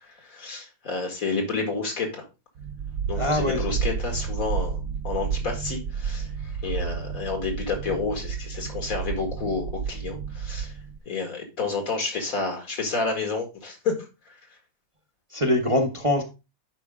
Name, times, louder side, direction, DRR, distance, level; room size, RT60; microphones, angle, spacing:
voice 1, 0.2-2.2 3.1-10.7 11.1-14.0, left 4 dB, 70° left, 3 dB, 2.4 m, -30 dB
sound 1, 2.6-11.0, right 6 dB, 75° right, 1.2 m, -31 dB
voice 2, 3.1-3.8 15.3-16.2, left 1 dB, 25° right, 3 dB, 0.8 m, -23 dB
9.9 x 4.8 x 3.6 m, 0.28 s
omnidirectional pair, 1.5 m